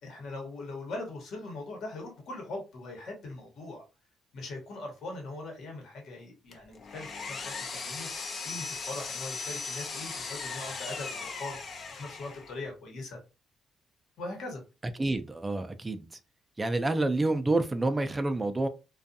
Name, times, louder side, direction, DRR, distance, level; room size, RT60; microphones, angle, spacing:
voice 1, 0.0-3.8 4.3-13.2 14.2-14.6, left 2 dB, 70° left, 1.1 m, -41 dB
Power tool, 6.5-12.6, left 4 dB, 50° left, 0.5 m, -38 dB
voice 2, 15.0-16.1 16.6-18.7, right 2 dB, 20° right, 0.4 m, -28 dB
2.4 x 2.3 x 2.6 m
cardioid pair, 90°, 0 cm